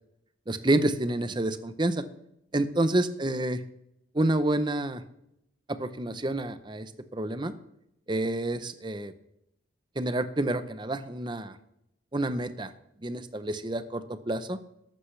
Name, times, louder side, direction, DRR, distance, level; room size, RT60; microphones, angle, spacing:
voice 1, 0.5-2.0 2.5-3.6 4.1-5.0 5.8-7.5 8.1-9.1 10.0-11.5 12.1-12.7 13.0-14.6, right 1 dB, 25° right, 11 dB, 0.7 m, -28 dB
13.5 x 11.5 x 3.3 m, 0.79 s
head